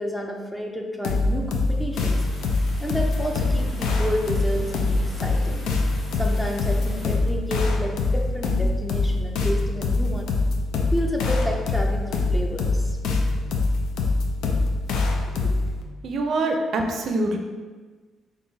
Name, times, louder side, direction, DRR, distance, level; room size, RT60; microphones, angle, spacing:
voice 1, 0.0-2.3 2.8-5.6 6.2-10.4 10.9-13.0, equal, 5° left, 1 dB, 0.5 m, -30 dB
sound 1, 1.0-15.8, left 3 dB, 85° left, 0.4 m, -24 dB
sound 2, 1.9-7.2, left 1 dB, 55° left, 1.1 m, -41 dB
voice 2, 16.0-17.4, right 2 dB, 65° right, 3 dB, 0.4 m, -24 dB
5.5 x 2.4 x 2.7 m, 1.4 s
cardioid pair, 90°, 0 cm